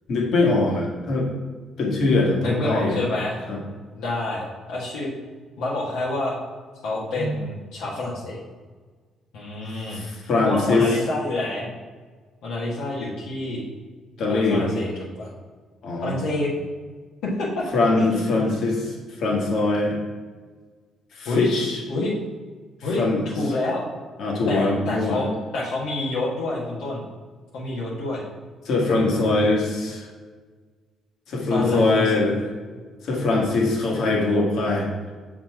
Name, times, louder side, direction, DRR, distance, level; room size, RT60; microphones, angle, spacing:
voice 1, 0.1-1.3 1.8-3.0 3.5-3.6 7.2-7.4 9.7-10.9 14.2-14.7 15.8-16.2 17.7-20.0 21.1-21.8 23.0-23.2 24.2-25.2 28.7-30.1 31.3-32.4 33.0-34.9, left 3 dB, 65° left, -1 dB, 1.7 m, -22 dB
voice 2, 2.4-3.4 3.9-5.1 5.6-6.4 6.8-8.4 9.3-10.0 10.4-11.7 12.4-13.6 14.3-14.9 15.2-15.3 16.0-16.5 17.2-17.7 17.9-18.5 21.2-21.5 21.9-22.1 22.8-23.8 24.5-25.3 25.5-27.0 27.5-28.2 29.1-29.5 31.5-32.4, left 2 dB, 85° left, -5 dB, 1.4 m, -28 dB
6.1 x 4.3 x 5.7 m, 1.4 s
cardioid pair, 100°, 0 cm